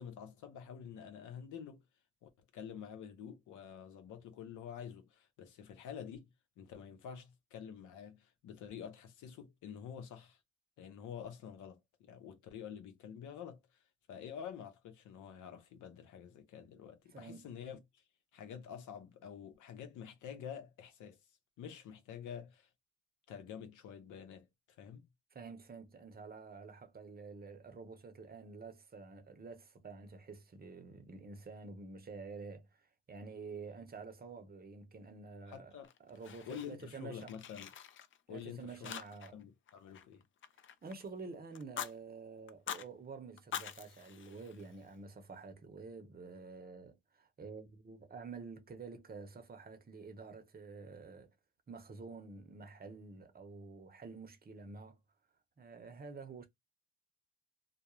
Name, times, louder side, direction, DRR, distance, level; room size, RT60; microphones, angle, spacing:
voice 1, 0.0-1.8 2.2-6.3 6.6-10.4 10.8-13.6 14.1-18.0 18.3-21.2 21.6-22.7 23.3-24.5 24.8-25.0 35.5-35.9 36.5-37.7 38.3-38.9 39.3-40.2, left 8 dB, 80° left, 0.7 m, -48 dB
voice 2, 17.1-17.5 25.3-35.7 36.1-37.3 38.3-39.4 40.8-51.3 51.7-55.0 55.6-56.5, right 4 dB, 30° right, 0.7 m, -49 dB
Fire, 35.8-36.9 37.2-38.4 38.8-39.4 39.7-41.1 41.5-41.9 42.5-42.9 43.4-44.9, left 9 dB, 40° left, 0.4 m, -45 dB
2.3 x 2.1 x 2.9 m
cardioid pair, 90°, 30 cm